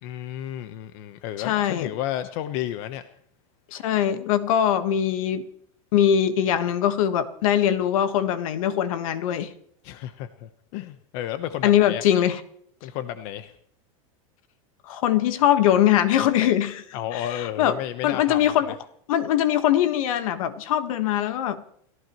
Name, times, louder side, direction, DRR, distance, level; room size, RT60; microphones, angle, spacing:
voice 1, 0.0-3.0 9.8-12.1 12.8-13.5 16.9-18.5, left 11 dB, 55° left, 9 dB, 1.1 m, -32 dB
voice 2, 1.4-1.9 3.7-5.5 5.9-9.5 11.6-12.4 14.9-16.8 17.1-17.8 18.0-18.7 19.1-21.6, left 10 dB, 70° left, 10 dB, 1.5 m, -22 dB
29.5 x 14.5 x 3.1 m, 0.67 s
supercardioid pair, 140°, 18 cm